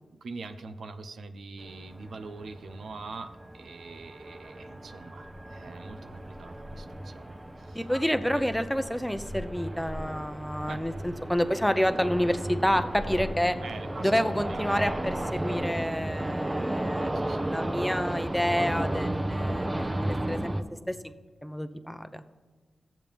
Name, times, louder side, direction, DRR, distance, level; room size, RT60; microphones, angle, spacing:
voice 1, 0.1-8.4 10.7-10.9 13.6-14.7 17.1-17.5, right 3 dB, 80° right, 8 dB, 0.6 m, -44 dB
sound 1, 1.6-20.6, right 1 dB, 25° right, 0.8 m, -34 dB
voice 2, 7.7-13.6 14.0-20.5 20.9-21.1 21.4-22.2, equal, 5° left, 9 dB, 0.8 m, -29 dB
16.5 x 7.3 x 3.6 m, 1.4 s
cardioid pair, 50°, 0 cm